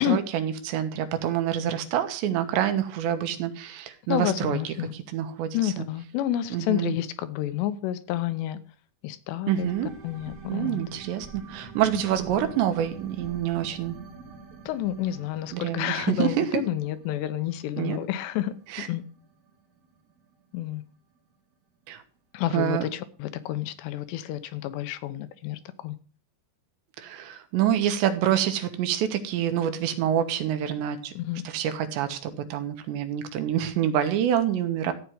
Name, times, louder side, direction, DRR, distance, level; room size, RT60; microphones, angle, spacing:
voice 1, 0.0-4.7 5.1-5.9 6.5-7.0 9.5-9.9 10.5-14.0 15.5-16.6 17.8-18.0 18.7-18.9 21.9-22.0 22.5-22.8 27.0-31.1 31.5-34.9, right 10 dB, 85° right, 3.5 m, -27 dB
voice 2, 4.1-4.9 5.5-8.6 9.0-9.7 10.0-10.8 14.7-19.0 20.5-20.8 22.3-26.0 31.2-31.4, left 12 dB, 80° left, 3.0 m, -29 dB
sound 1, 9.6-20.9 21.3-21.4, right 4 dB, 55° right, 1.9 m, -45 dB
14.0 x 4.8 x 9.2 m
omnidirectional pair, 5.0 m